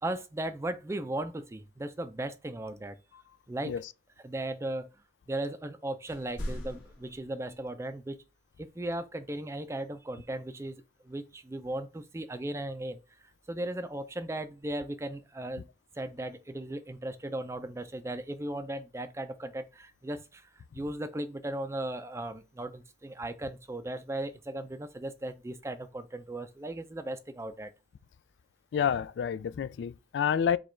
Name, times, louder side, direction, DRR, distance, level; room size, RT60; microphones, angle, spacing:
voice 1, 0.0-3.0 3.5-3.7 4.2-4.9 5.3-8.2 8.6-13.0 13.5-15.7 16.0-27.7, right 1 dB, 15° right, 0.4 m, -37 dB
sound 1, 6.1-7.7 10.2-10.3, equal, 70° left, 1.6 m, -40 dB
voice 2, 28.7-30.6, left 8 dB, 85° left, 0.3 m, -29 dB
4.9 x 2.3 x 4.3 m
head